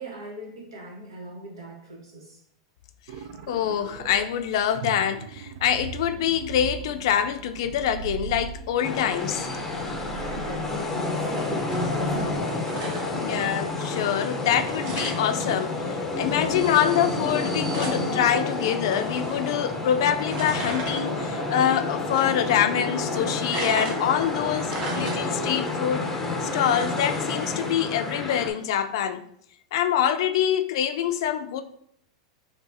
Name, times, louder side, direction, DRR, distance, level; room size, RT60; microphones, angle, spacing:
voice 1, 0.0-2.4 10.2-12.8, right 1 dB, 85° right, 1.2 m, -40 dB
sound 1, 3.1-4.2 4.7-12.4, right 8 dB, 60° right, 0.3 m, -40 dB
voice 2, 3.5-9.5 13.1-26.1 26.4-29.2 29.7-31.6, left 9 dB, 70° left, 0.4 m, -25 dB
sound 2, 8.8-28.5, left 3 dB, 10° left, 0.6 m, -29 dB
sound 3, 11.7-25.7, right 2 dB, 45° right, 1.2 m, -39 dB
4.7 x 2.3 x 2.6 m
hypercardioid pair, 120°, 3 cm